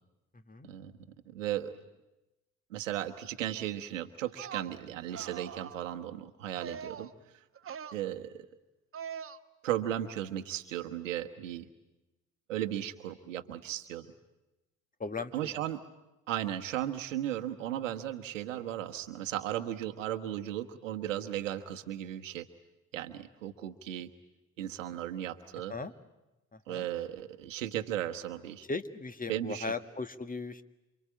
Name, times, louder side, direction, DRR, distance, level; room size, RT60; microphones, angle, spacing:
voice 1, 0.3-0.7 15.0-15.6 25.7-25.9 26.5-26.9 28.7-30.6, left 3 dB, 20° left, 11 dB, 1.6 m, -38 dB
voice 2, 1.3-1.8 2.7-7.1 7.9-8.5 9.6-11.7 12.5-14.1 15.3-15.8 16.3-22.5 22.9-24.1 24.6-25.7 26.7-28.7 29.3-29.7, right 12 dB, 85° right, 8 dB, 1.3 m, -36 dB
sound 1, 4.3-4.7 5.1-5.9 6.6-7.1 7.6-8.0 8.9-9.4, right 8 dB, 35° right, 1.1 m, -42 dB
27.5 x 24.5 x 8.7 m, 1.0 s
hypercardioid pair, 55°, 37 cm